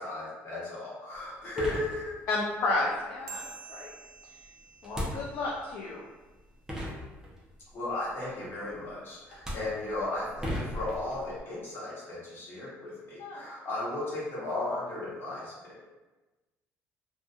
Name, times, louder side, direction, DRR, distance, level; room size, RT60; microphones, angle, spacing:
voice 1, 0.0-2.1 7.7-15.9, left 2 dB, 45° left, -7 dB, 1.1 m, -35 dB
sound 1, 1.2-1.3 1.6-2.5 4.8-5.7 6.4-6.5 6.7-7.6 8.7-8.9 9.3-11.4, equal, 10° right, 0.6 m, -37 dB
voice 2, 2.3-3.9 4.8-6.0 13.2-13.4, left 2 dB, 60° left, -3 dB, 0.4 m, -32 dB
sound 2, 3.3-6.1, right 6 dB, 65° right, 0.3 m, -48 dB
2.6 x 2.3 x 2.3 m, 1.2 s
cardioid pair, 110°, 5 cm